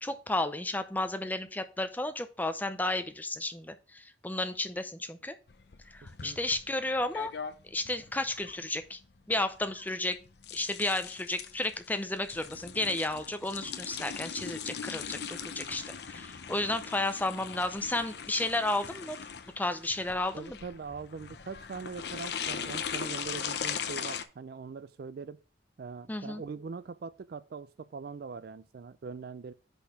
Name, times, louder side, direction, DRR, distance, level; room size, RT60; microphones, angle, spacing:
voice 1, 0.0-5.4 5.9-7.3 7.7-9.0 9.3-10.2 10.5-19.2 19.6-20.6 26.1-26.4, left 2 dB, 10° left, 0.5 m, -32 dB
sound 1, 5.5-24.2, left 7 dB, 60° left, 0.6 m, -40 dB
voice 2, 20.3-25.4 25.8-29.5, right 5 dB, 55° right, 0.4 m, -42 dB
5.3 x 4.4 x 5.9 m
head